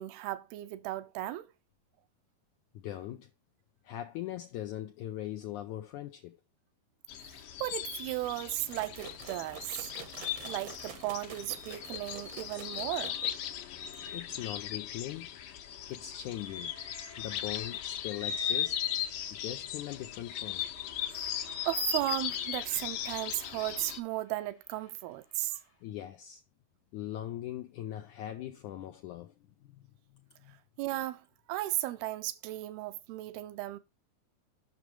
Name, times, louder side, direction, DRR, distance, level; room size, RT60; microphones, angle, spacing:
voice 1, 0.0-1.5 7.2-9.9 10.4-13.2 21.1-21.4 21.7-25.6 30.8-33.8, right 16 dB, 85° right, 2.6 m, -35 dB
voice 2, 2.7-3.3 3.8-6.4 14.1-15.3 15.9-16.7 17.2-18.8 19.3-20.6 25.8-26.4 26.9-29.3 29.6-29.9 30.1-30.6, left 12 dB, 90° left, 1.7 m, -40 dB
sound 1, 7.1-24.0, left 10 dB, 70° left, 2.4 m, -38 dB
sound 2, 8.7-13.6, right 7 dB, 65° right, 1.5 m, -48 dB
Train, 16.3-19.7 20.5-25.8, equal, 35° left, 0.7 m, -57 dB
8.2 x 6.3 x 4.6 m
omnidirectional pair, 4.3 m